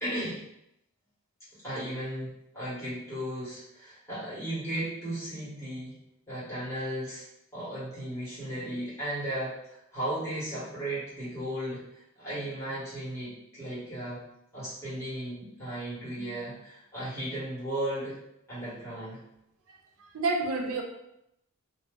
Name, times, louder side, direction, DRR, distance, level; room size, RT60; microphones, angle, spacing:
voice 1, 0.0-0.4 1.6-6.0 6.3-7.2 7.5-11.8 12.2-14.2 14.5-18.1 18.5-19.2, right 1 dB, 10° left, -10 dB, 1.5 m, -35 dB
voice 2, 19.7-20.8, right 3 dB, 70° right, 2 dB, 0.5 m, -30 dB
2.7 x 2.1 x 3.7 m, 0.81 s
head